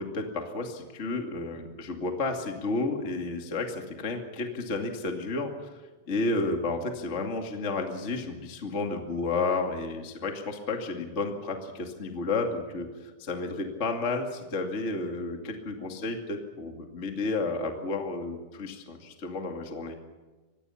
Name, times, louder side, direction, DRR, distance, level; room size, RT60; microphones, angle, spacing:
voice 1, 0.0-5.7 6.1-19.9, left 3 dB, 30° left, 3 dB, 1.2 m, -32 dB
25.5 x 20.5 x 5.8 m, 1.2 s
omnidirectional pair, 5.4 m